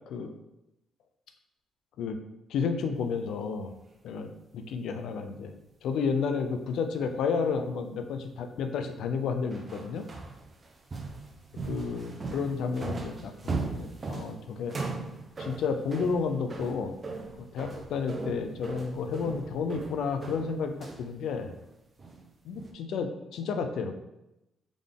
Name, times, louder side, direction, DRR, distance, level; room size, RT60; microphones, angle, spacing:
voice 1, 2.5-3.7 4.0-5.5 5.8-10.0 11.6-14.7 15.4-17.0 17.5-21.5 22.4-24.0, left 5 dB, 80° left, 7 dB, 0.5 m, -31 dB
sound 1, 9.5-21.1 21.4-21.7 22.0-22.3 22.6-22.7, right 3 dB, 40° right, 0.8 m, -38 dB
3.7 x 3.6 x 3.6 m, 0.90 s
cardioid pair, 70°, 0 cm